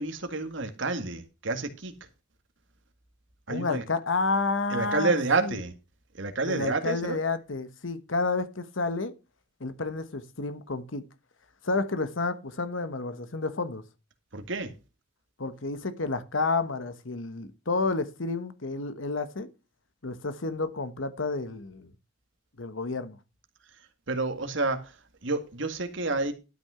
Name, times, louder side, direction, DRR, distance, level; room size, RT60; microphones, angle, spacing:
voice 1, 0.0-1.9 3.5-3.8 4.7-5.7 6.1-7.2 14.3-14.7 24.1-25.0 25.2-26.3, right 3 dB, 65° right, 1.8 m, -29 dB
voice 2, 3.5-5.1 5.4-5.6 6.4-9.1 9.6-11.0 11.6-13.8 15.4-19.5 20.0-21.9 22.6-23.2, left 3 dB, 70° left, 1.2 m, -30 dB
12.5 x 6.2 x 5.6 m
head